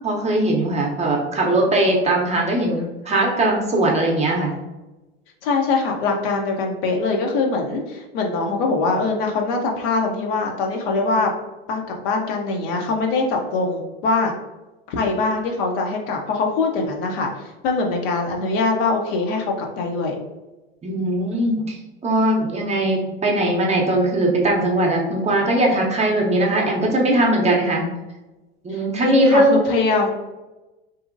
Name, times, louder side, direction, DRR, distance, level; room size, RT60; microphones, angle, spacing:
voice 1, 0.0-4.5 20.8-21.8 22.0-27.9 28.6-29.6, right 1 dB, 20° right, -1 dB, 0.7 m, -20 dB
voice 2, 5.4-11.3 11.7-14.4 14.9-20.2 28.7-30.1, left 3 dB, 60° left, 2 dB, 0.7 m, -23 dB
2.8 x 2.6 x 2.5 m, 1.1 s
hypercardioid pair, 85°, 31 cm